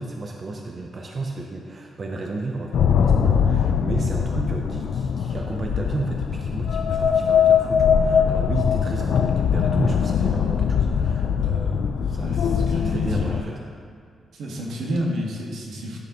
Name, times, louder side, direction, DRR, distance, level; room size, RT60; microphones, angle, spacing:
voice 1, 0.0-13.6, right 3 dB, 30° right, 1 dB, 0.5 m, -32 dB
sound 1, 2.7-13.4, left 7 dB, 65° left, 0.3 m, -21 dB
voice 2, 12.2-13.6 14.3-16.0, equal, 75° right, -1 dB, 1.3 m, -30 dB
11.5 x 6.3 x 2.9 m, 2.3 s
wide cardioid pair, 170°, 0 cm